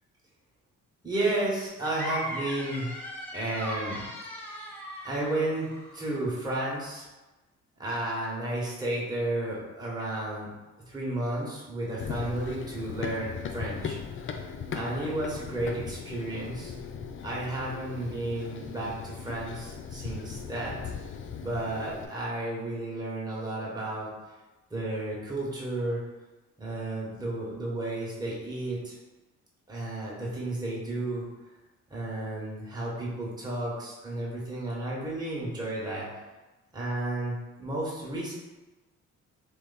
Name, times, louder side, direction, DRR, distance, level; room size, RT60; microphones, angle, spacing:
voice 1, 1.0-3.0 3.3-4.0 5.0-7.0 7.8-10.5 10.9-14.0 14.7-16.7 17.2-20.7 21.4-24.1 24.7-26.0 26.6-28.9 29.7-31.2 31.9-36.0 36.7-38.3, right 1 dB, 15° right, -6 dB, 1.4 m, -32 dB
sound 1, 1.8-6.2, equal, 5° left, 1.3 m, -38 dB
Run, 12.0-22.1, left 6 dB, 40° left, 0.5 m, -38 dB
3.4 x 2.9 x 4.1 m, 1.1 s
cardioid pair, 90°, 30 cm